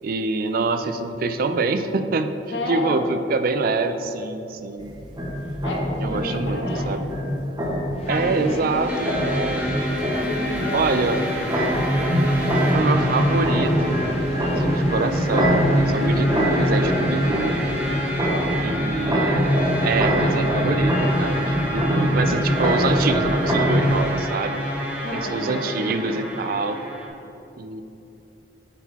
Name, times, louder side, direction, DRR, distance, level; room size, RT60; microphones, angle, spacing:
voice 1, 0.0-2.3 2.7-4.9 6.0-7.1 8.1-9.7 10.7-11.3 12.7-14.0 14.6-17.6 18.6-19.6 19.8-24.6 25.1-26.8 27.6-27.8, right 3 dB, 55° right, 9 dB, 0.4 m, -25 dB
voice 2, 2.5-3.0 5.6-6.9 8.1-9.0 10.1-11.4 18.2-18.6 20.1-20.5 25.0-26.2, left 1 dB, 75° left, 0 dB, 1.1 m, -32 dB
sound 1, 4.8-24.0, equal, 25° right, 1.3 m, -23 dB
sound 2, 7.9-18.3, left 2 dB, 35° left, 0.7 m, -33 dB
sound 3, 8.9-27.1, equal, 10° right, 0.8 m, -30 dB
8.9 x 4.0 x 4.1 m, 2.9 s
head